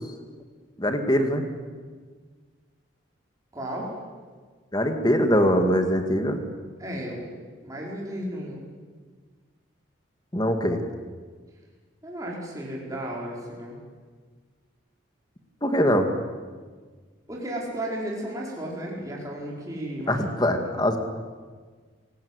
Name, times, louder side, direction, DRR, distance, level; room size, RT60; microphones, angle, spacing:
voice 1, 0.8-1.4 4.7-6.4 10.3-10.8 15.6-16.1 20.1-21.0, equal, 20° left, 6 dB, 2.2 m, -22 dB
voice 2, 3.5-3.9 6.8-7.3 7.6-8.6 12.0-13.8 17.3-20.1 20.4-20.7, right 1 dB, 15° right, -3 dB, 5.1 m, -34 dB
27.0 x 18.0 x 8.2 m, 1.5 s
head